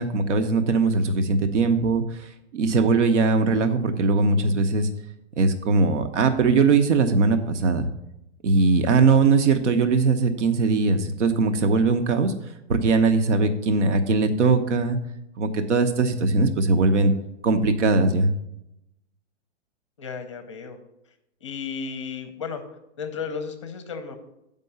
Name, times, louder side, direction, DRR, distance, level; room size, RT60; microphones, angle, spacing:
voice 1, 0.0-4.9 5.4-7.9 8.4-12.3 12.7-15.0 15.4-17.1 17.4-18.3, right 4 dB, 75° right, 8 dB, 1.1 m, -20 dB
voice 2, 20.0-20.8 21.4-22.6 23.0-24.2, left 5 dB, 25° left, 8 dB, 0.6 m, -33 dB
7.6 x 5.3 x 6.8 m, 0.83 s
hypercardioid pair, 180°, 35 cm